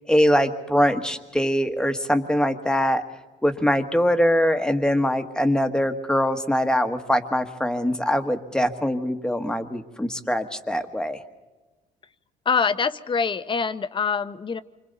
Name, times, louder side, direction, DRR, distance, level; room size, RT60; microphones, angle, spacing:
voice 1, 0.1-3.0 3.4-11.2, equal, 5° left, 7 dB, 1.5 m, -22 dB
voice 2, 12.5-14.6, left 5 dB, 30° left, 12 dB, 0.9 m, -24 dB
28.5 x 25.5 x 4.1 m, 1.2 s
cardioid pair, 110°, 17 cm